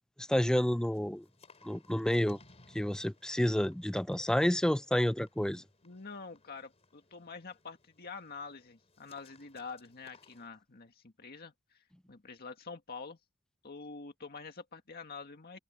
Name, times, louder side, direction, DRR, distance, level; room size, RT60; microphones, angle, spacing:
voice 1, 0.2-1.2 1.6-2.4 2.7-5.6, equal, 5° left, 0.4 m, -29 dB
sound 1, 0.6-10.5, left 3 dB, 30° left, 4.2 m, -64 dB
voice 2, 5.8-13.2 13.6-15.6, left 4 dB, 50° left, 1.8 m, -46 dB
open air
head